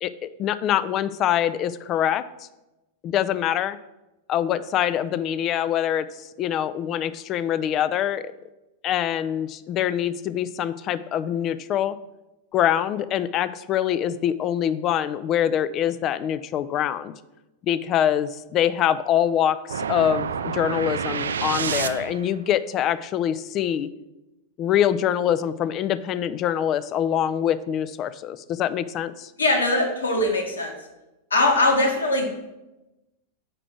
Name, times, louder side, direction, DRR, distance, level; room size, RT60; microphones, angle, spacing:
voice 1, 0.0-2.2 3.0-3.8 4.3-6.1 6.4-8.2 8.8-12.0 12.5-17.1 17.6-23.9 24.6-29.3, left 10 dB, 35° left, 15 dB, 0.3 m, -24 dB
sound 1, 19.7-22.4, right 6 dB, 70° right, 0.3 m, -28 dB
voice 2, 29.4-30.7 31.3-32.3, left 2 dB, 75° left, 1 dB, 1.2 m, -21 dB
4.9 x 4.6 x 6.1 m, 1.0 s
figure-of-eight pair, 90°, 0 cm